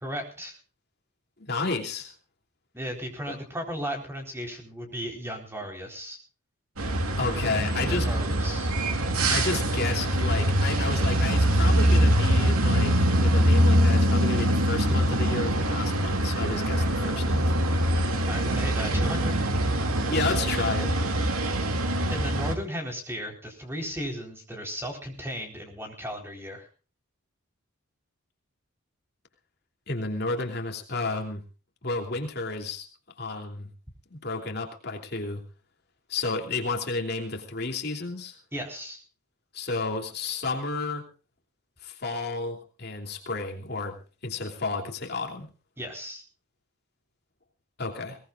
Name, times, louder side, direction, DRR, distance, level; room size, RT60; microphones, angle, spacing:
voice 1, 0.0-0.6 2.7-6.2 7.9-8.7 18.3-19.4 22.1-26.7 38.5-39.0 45.8-46.2, equal, 10° right, 2 dB, 4.2 m, -35 dB
voice 2, 1.4-2.1 3.3-3.4 7.2-8.1 9.3-17.5 20.1-20.9 29.9-31.4 31.8-32.9 33.2-33.7 34.1-35.4 36.1-38.4 39.5-41.1 41.8-44.0 44.2-45.5 47.8-48.2, left 3 dB, 45° left, 3 dB, 3.0 m, -31 dB
sound 1, 6.8-22.5, right 1 dB, 85° right, 2.5 m, -23 dB
21.5 x 19.5 x 2.5 m, 0.35 s
head